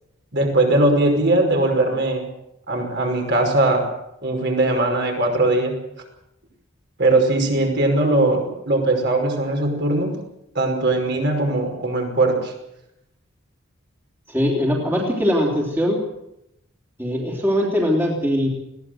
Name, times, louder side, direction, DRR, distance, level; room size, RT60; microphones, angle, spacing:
voice 1, 0.3-2.2 2.7-3.9 4.2-5.7 7.0-10.2 10.6-12.5, right 2 dB, 50° right, 2 dB, 5.5 m, -20 dB
voice 2, 14.3-16.0 17.0-18.5, equal, 10° right, -2 dB, 3.2 m, -21 dB
21.0 x 17.0 x 7.8 m, 0.84 s
head